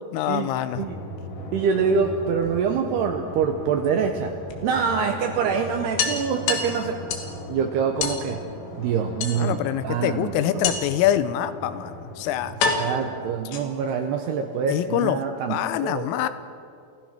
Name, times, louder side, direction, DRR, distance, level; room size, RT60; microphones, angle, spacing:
voice 1, 0.1-0.8 9.3-12.5 14.7-15.2 15.5-16.3, left 12 dB, 85° left, 12 dB, 3.4 m, -25 dB
Drum, 0.7-13.8, left 1 dB, 40° left, 4.2 m, -39 dB
voice 2, 1.5-4.3 4.6-7.0 7.5-8.4 8.8-10.7 12.8-16.1, right 6 dB, 80° right, 4 dB, 2.4 m, -25 dB
sound 1, 2.0-3.0 4.5-4.6 5.0-5.1 5.4-5.5 6.0-7.4 8.0-8.3 9.2-9.8 10.6-11.1 11.9-12.0 12.6-14.0, left 5 dB, 65° left, 3.7 m, -28 dB
29.0 x 15.5 x 6.0 m, 2.3 s
omnidirectional pair, 5.8 m